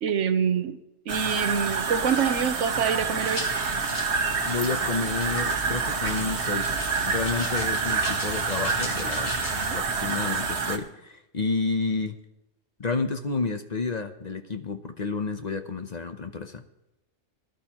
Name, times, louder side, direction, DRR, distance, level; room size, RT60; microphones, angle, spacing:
voice 1, 0.0-0.8 1.1-3.4 9.5-9.8, right 7 dB, 80° right, 10 dB, 1.2 m, -26 dB
sound 1, 1.1-10.8, right 4 dB, 65° right, 1.4 m, -27 dB
sound 2, 2.7-9.7, left 2 dB, 70° left, 2.6 m, -38 dB
voice 2, 4.4-9.3 9.7-12.2 12.8-16.6, left 4 dB, 40° left, 7 dB, 0.7 m, -30 dB
19.5 x 12.0 x 2.9 m, 0.89 s
omnidirectional pair, 1.2 m